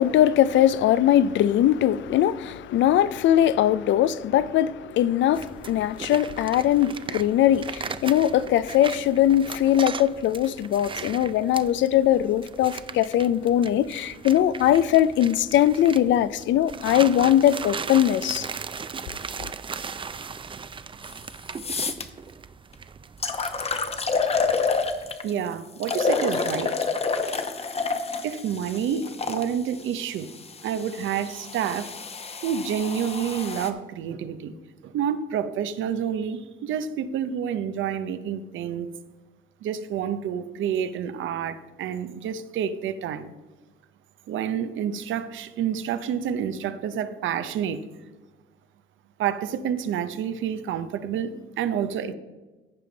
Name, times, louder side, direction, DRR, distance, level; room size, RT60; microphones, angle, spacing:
voice 1, 0.0-18.5, left 11 dB, 70° left, 0.4 m, -21 dB
sound 1, 5.3-25.2, right 5 dB, 25° right, 0.4 m, -38 dB
sound 2, 21.1-21.2 21.6-22.0 22.7-22.8 23.2-25.3 25.8-29.4 30.3-33.7, left 4 dB, 30° left, 0.9 m, -28 dB
voice 2, 25.2-26.7 28.2-30.3 30.6-31.9 32.4-34.5 34.8-38.9 39.6-43.3 44.3-47.8 49.2-52.1, right 8 dB, 75° right, 0.6 m, -28 dB
15.0 x 5.3 x 3.9 m
cardioid pair, 90°, 20 cm